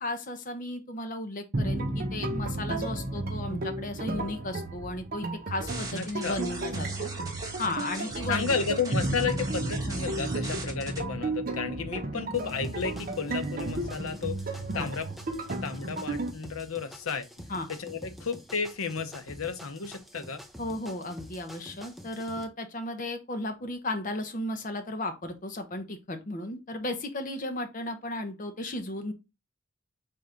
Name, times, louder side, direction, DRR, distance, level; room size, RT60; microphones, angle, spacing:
voice 1, 0.0-7.1 7.6-8.5 14.7-14.9 17.5-17.7 20.6-29.1, left 1 dB, 40° left, 0.7 m, -35 dB
sound 1, 1.5-16.3, right 2 dB, 40° right, 0.7 m, -33 dB
sound 2, 5.7-11.0, right 2 dB, 15° right, 1.1 m, -40 dB
voice 2, 6.0-6.4 8.1-15.1 15.6-17.3 17.7-20.4, left 5 dB, 80° left, 0.7 m, -33 dB
sound 3, 12.3-22.4, equal, ahead, 0.5 m, -47 dB
4.2 x 3.3 x 3.7 m
head